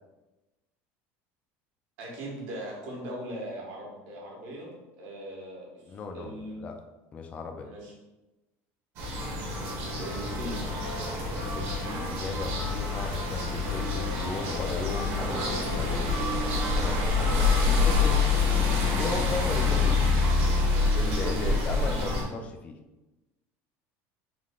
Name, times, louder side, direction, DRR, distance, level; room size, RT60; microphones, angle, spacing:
voice 1, 2.0-6.6 7.6-7.9 10.0-10.6, right 1 dB, 65° right, -3 dB, 1.4 m, -39 dB
voice 2, 5.9-6.8 7.1-7.7 11.5-17.1 17.6-18.3 18.7-20.1 20.9-22.8, left 4 dB, 20° left, 5 dB, 0.3 m, -36 dB
sound 1, 9.0-22.2, left 3 dB, 40° right, 1.0 m, -26 dB
3.7 x 3.2 x 3.7 m, 1.1 s
cardioid pair, 175°, 6 cm